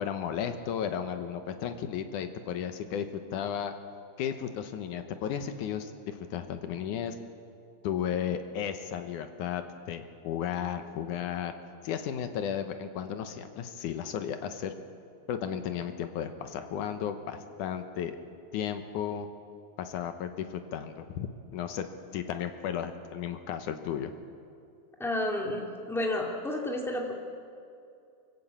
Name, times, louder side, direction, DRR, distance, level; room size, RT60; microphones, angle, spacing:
voice 1, 0.0-3.7 4.2-7.2 7.8-11.5 11.8-14.7 15.3-18.2 18.5-19.3 19.8-21.9 22.1-24.1, left 8 dB, 70° left, 8 dB, 2.0 m, -34 dB
voice 2, 25.0-27.1, left 1 dB, ahead, 0 dB, 1.0 m, -31 dB
24.5 x 15.0 x 8.6 m, 2.5 s
omnidirectional pair, 4.5 m